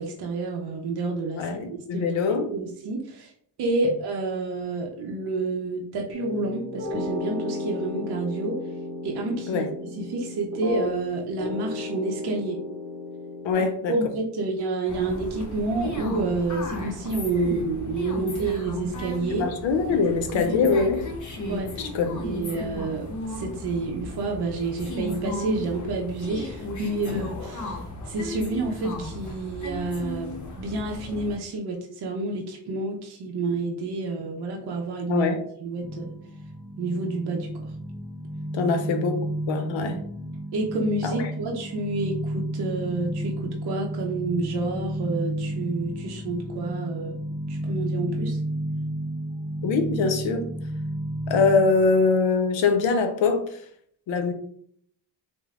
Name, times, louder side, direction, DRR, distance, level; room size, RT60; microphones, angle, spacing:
voice 1, 0.0-1.4 1.9-2.1 2.5-3.3 3.6-8.6 9.0-9.7 9.9-12.6 13.5-19.5 19.9-20.0 20.3-20.7 21.5-21.9 22.2-27.8 28.0-35.3 35.6-36.1 36.8-37.7 38.6-38.7 40.5-47.2 47.5-48.4, right 3 dB, 60° right, 1 dB, 0.6 m, -29 dB
voice 2, 1.3-2.5 9.5-9.7 13.4-13.9 19.3-21.0 21.8-22.2 35.1-35.4 38.5-39.2 39.5-40.0 41.0-41.3 49.6-50.5 51.3-53.6 54.1-54.3, left 4 dB, 80° left, 6 dB, 0.6 m, -23 dB
sound 1, 6.1-11.1 11.4-13.5, left 2 dB, 40° right, 0.9 m, -33 dB
sound 2, 14.8-31.4, left 2 dB, 40° left, 0.7 m, -35 dB
sound 3, 35.8-51.9, right 1 dB, ahead, 0.7 m, -32 dB
3.2 x 2.0 x 2.3 m, 0.64 s
cardioid pair, 60°, 45 cm